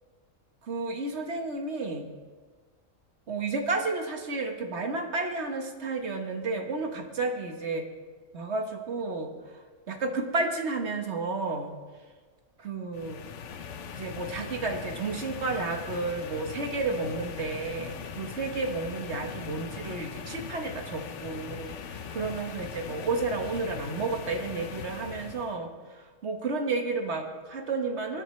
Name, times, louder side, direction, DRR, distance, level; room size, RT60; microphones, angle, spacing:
voice 1, 0.6-2.1 3.3-7.9 8.3-11.7 12.6-13.2 13.9-28.2, right 3 dB, 55° right, 4 dB, 1.4 m, -32 dB
sound 1, 12.9-25.6, left 7 dB, 65° left, 1.0 m, -40 dB
20.5 x 10.5 x 3.2 m, 1.4 s
omnidirectional pair, 1.4 m